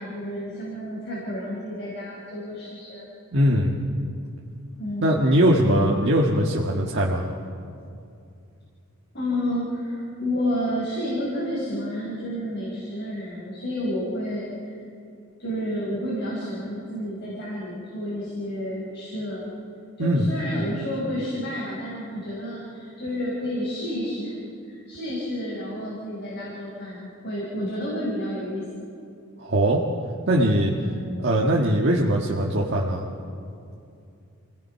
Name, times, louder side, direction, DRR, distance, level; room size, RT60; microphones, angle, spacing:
voice 1, 0.0-3.1 4.8-5.3 9.1-14.7 15.4-19.5 20.0-24.4 24.6-28.9 30.8-31.3, equal, 55° left, -6 dB, 6.5 m, -30 dB
voice 2, 3.3-3.7 5.0-7.3 20.0-20.3 29.4-29.8 30.3-30.7 31.2-33.1, right 1 dB, 55° right, -3 dB, 1.8 m, -21 dB
29.5 x 19.0 x 5.9 m, 2.5 s
head